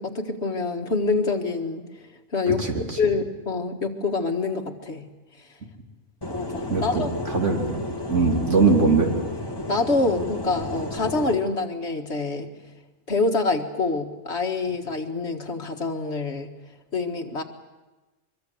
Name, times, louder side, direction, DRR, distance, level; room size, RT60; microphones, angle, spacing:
voice 1, 0.0-1.8 2.3-5.1 6.3-7.1 9.7-12.5 13.1-16.5 16.9-17.4, left 3 dB, 55° left, 4 dB, 2.0 m, -26 dB
voice 2, 2.5-3.0 6.7-9.1, right 4 dB, 65° right, 2 dB, 3.2 m, -22 dB
sound 1, 6.2-11.3, left 1 dB, 20° left, 2.1 m, -32 dB
24.0 x 23.5 x 7.8 m, 1.1 s
omnidirectional pair, 1.4 m